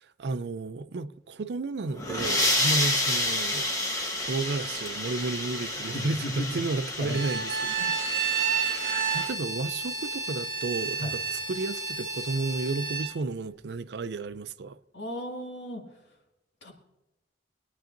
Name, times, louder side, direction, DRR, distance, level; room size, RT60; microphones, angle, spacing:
voice 1, 0.0-3.7 4.2-7.8 8.6-14.8, right 3 dB, 65° right, 0.4 m, -32 dB
sound 1, 1.8-9.3, left 1 dB, 20° left, 1.4 m, -30 dB
voice 2, 5.9-6.6 7.0-7.2 7.8-7.9 8.2-8.4 11.0-11.1 14.9-15.8 16.6-16.7, left 1 dB, 75° left, 2.0 m, -36 dB
Bowed string instrument, 7.1-13.1, right 5 dB, 40° right, 2.1 m, -31 dB
22.0 x 9.1 x 2.6 m
head